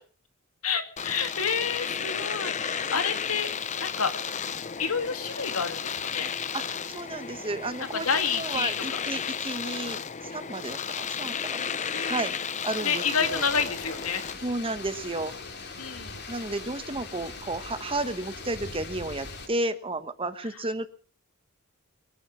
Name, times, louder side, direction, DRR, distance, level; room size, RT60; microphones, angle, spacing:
voice 1, 0.6-3.5 3.8-4.1 4.4-4.5 4.8-6.3 7.9-9.0 11.9-12.3 12.8-14.2 15.8-16.1, left 6 dB, 70° left, 7 dB, 2.3 m, -29 dB
Domestic sounds home sounds, 1.0-14.4, left 7 dB, 35° left, 0.7 m, -33 dB
voice 2, 6.5-8.1 8.3-10.0 10.3-12.3 12.6-13.0 13.3-13.4 14.4-15.3 16.3-20.9, right 2 dB, 25° right, 11 dB, 1.2 m, -32 dB
sound 1, 13.2-19.5, left 3 dB, 50° left, 2.9 m, -41 dB
23.0 x 10.0 x 6.2 m, 0.43 s
head